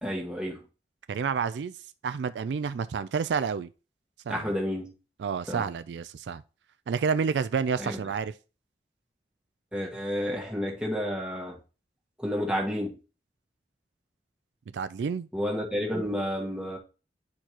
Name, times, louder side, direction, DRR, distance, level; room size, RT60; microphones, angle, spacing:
voice 1, 0.0-0.6 4.3-4.9 5.5-5.6 7.8-8.0 9.7-11.6 12.2-13.0 15.3-16.8, equal, 5° right, 1.4 m, -30 dB
voice 2, 1.1-1.8 2.0-3.7 4.3-4.5 5.2-6.4 6.9-8.3 14.7-15.3, right 6 dB, 80° right, 0.3 m, -29 dB
9.6 x 4.5 x 2.9 m
head